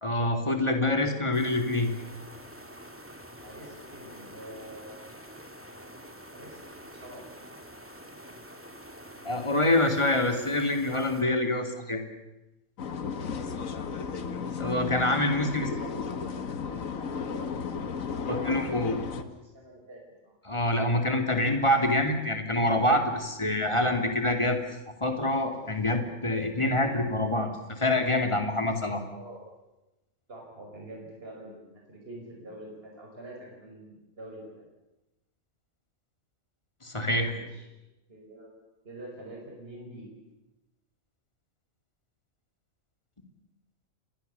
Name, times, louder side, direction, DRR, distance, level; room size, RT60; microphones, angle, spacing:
voice 1, 0.0-1.9 9.2-12.0 14.6-15.7 18.3-18.9 20.5-24.6 25.0-29.0 36.8-37.3, left 1 dB, 20° left, 4 dB, 2.7 m, -26 dB
sound 1, 1.3-11.2, equal, 10° right, 2.3 m, -47 dB
voice 2, 3.4-5.9 6.3-7.3 13.1-14.2 15.1-16.3 16.6-17.5 17.7-20.3 29.1-29.5 30.3-34.7 37.3-37.7 38.1-38.5 38.8-40.1, right 1 dB, 45° right, -1 dB, 5.8 m, -46 dB
sound 2, 12.8-19.2, left 6 dB, 90° left, 1.7 m, -34 dB
28.5 x 22.0 x 7.0 m, 1.0 s
omnidirectional pair, 1.4 m